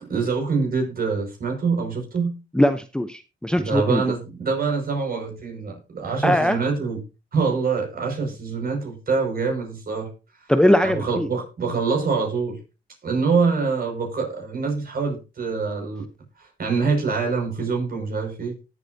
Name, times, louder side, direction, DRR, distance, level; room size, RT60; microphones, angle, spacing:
voice 1, 0.1-2.3 3.6-7.0 7.3-10.1 10.8-12.6 13.0-16.1 16.4-18.6, right 4 dB, 50° right, 2 dB, 5.7 m, -25 dB
voice 2, 2.5-4.0 6.2-6.6 10.5-11.3, left 1 dB, 5° left, 9 dB, 0.8 m, -20 dB
19.0 x 8.0 x 2.7 m, 0.29 s
cardioid pair, 90°, 20 cm